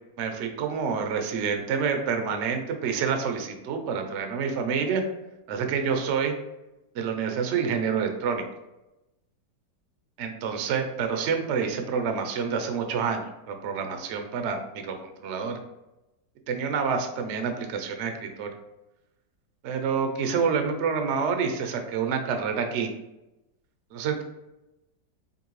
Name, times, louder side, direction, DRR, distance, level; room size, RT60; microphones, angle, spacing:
voice 1, 0.2-5.0 5.5-6.3 6.9-8.4 10.2-15.6 16.5-18.5 19.6-22.9 23.9-24.2, right 6 dB, 70° right, 5 dB, 0.6 m, -28 dB
5.0 x 2.7 x 3.1 m, 0.95 s
omnidirectional pair, 1.9 m